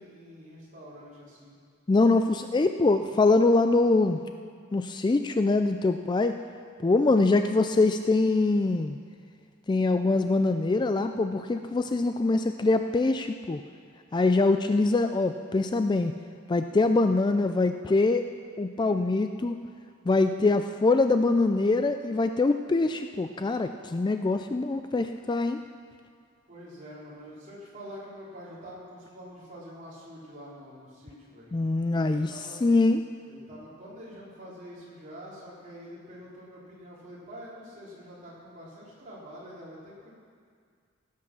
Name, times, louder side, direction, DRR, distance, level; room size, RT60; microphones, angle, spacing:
voice 1, 0.0-1.6 26.5-31.5 31.9-32.6 33.3-40.1, equal, 35° right, -7 dB, 3.9 m, -46 dB
voice 2, 1.9-4.2 4.7-6.3 6.8-9.0 9.7-13.6 14.1-16.1 16.5-18.2 18.6-19.6 20.1-25.6 31.5-32.3 32.6-33.0, left 3 dB, 20° left, 8 dB, 0.3 m, -24 dB
16.5 x 8.5 x 6.2 m, 2.1 s
head